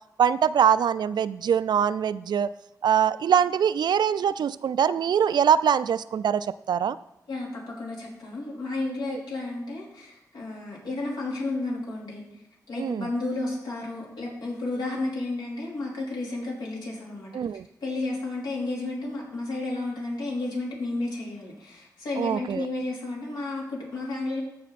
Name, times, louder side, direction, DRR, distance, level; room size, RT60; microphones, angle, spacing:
voice 1, 0.2-2.5 2.8-7.0 9.1-9.2 12.8-13.1 17.3-17.6 22.2-22.7, right 8 dB, 80° right, 15 dB, 0.4 m, -23 dB
voice 2, 7.3-12.2 12.7-17.3 17.8-24.4, left 2 dB, 85° left, -3 dB, 3.7 m, -32 dB
14.5 x 5.5 x 4.2 m, 0.89 s
cardioid pair, 75°, 7 cm